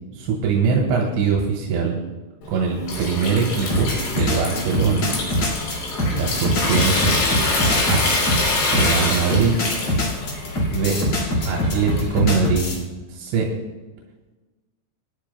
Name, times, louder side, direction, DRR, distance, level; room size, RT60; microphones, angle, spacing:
voice 1, 0.1-2.0 2.5-5.1 6.1-7.2 7.9-8.1 8.7-9.5 10.7-11.0 11.5-12.7 13.1-13.5, right 5 dB, 90° right, -1 dB, 4.0 m, -22 dB
Water tap faucet / Sink (filling or washing) / Trickle dribble, 2.4-12.4, left 2 dB, 80° left, 6.0 m, -25 dB
sound 1, 3.7-12.8, left 1 dB, 45° left, 2.5 m, -23 dB
27.0 x 10.0 x 2.2 m, 1.2 s
omnidirectional pair, 5.1 m